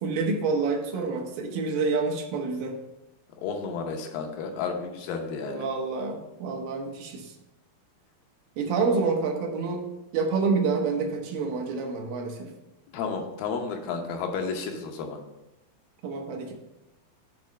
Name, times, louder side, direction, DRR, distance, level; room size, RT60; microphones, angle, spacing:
voice 1, 0.0-2.8 5.5-7.3 8.6-9.9 10.1-12.5 16.0-16.5, right 4 dB, 85° right, 2 dB, 2.7 m, -28 dB
voice 2, 3.4-5.7 12.9-15.2, left 5 dB, 80° left, 3 dB, 2.6 m, -32 dB
8.9 x 3.1 x 6.2 m, 0.94 s
omnidirectional pair, 4.0 m